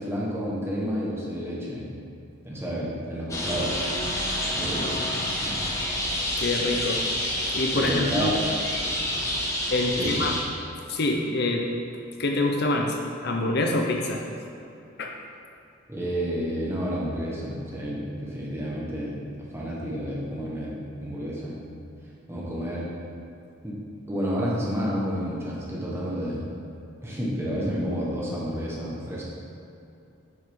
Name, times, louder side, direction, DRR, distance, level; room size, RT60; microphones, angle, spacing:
voice 1, 0.0-1.9 2.4-3.8 4.5-5.1 5.4-5.6 7.7-8.4 9.9-10.3 15.9-21.6 22.3-22.9 23.6-23.8 24.1-26.5 27.0-29.2, equal, 10° right, -5 dB, 1.4 m, -30 dB
sound 1, 3.3-10.4, left 1 dB, 15° left, 1.0 m, -28 dB
voice 2, 6.4-7.0 7.5-8.3 9.7-10.3 10.9-11.7 12.2-13.0 13.2-14.2 15.0-15.2, left 2 dB, 55° left, 1 dB, 0.7 m, -25 dB
9.3 x 6.1 x 3.8 m, 2.7 s
head